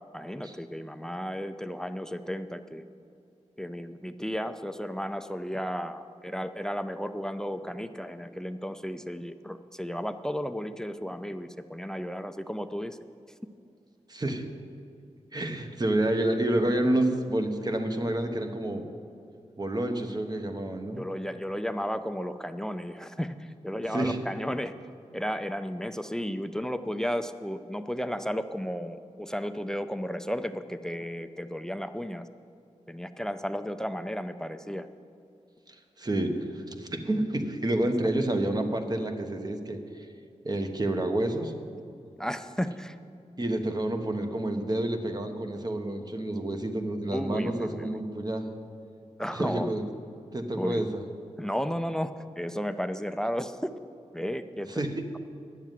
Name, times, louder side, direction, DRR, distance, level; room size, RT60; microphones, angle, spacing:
voice 1, 0.1-2.8 3.6-13.0 21.0-24.7 25.1-32.3 32.9-34.9 42.2-43.0 47.1-47.9 49.2-49.7 50.6-50.8 51.4-53.7 54.1-54.9, equal, 5° left, 11 dB, 0.5 m, -33 dB
voice 2, 14.1-14.5 15.3-18.9 19.6-21.0 23.9-24.2 35.7-39.8 40.4-41.5 43.4-48.5 49.3-49.8 50.3-51.0 54.8-55.0, right 1 dB, 35° right, 5 dB, 1.2 m, -29 dB
11.0 x 7.3 x 9.2 m, 2.5 s
wide cardioid pair, 80°, 12 cm